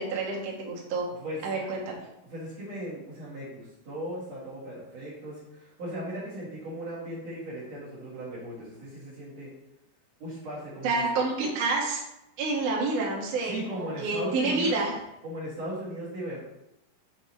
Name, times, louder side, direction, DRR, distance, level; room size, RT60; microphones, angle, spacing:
voice 1, 0.0-1.1 1.4-2.0 10.8-12.0 12.4-14.9, right 3 dB, 65° right, -2 dB, 1.5 m, -28 dB
voice 2, 2.3-9.5 10.2-10.9 13.4-14.8 15.2-16.4, right 1 dB, 45° right, -8 dB, 2.5 m, -37 dB
6.7 x 5.3 x 4.3 m, 0.89 s
omnidirectional pair, 5.3 m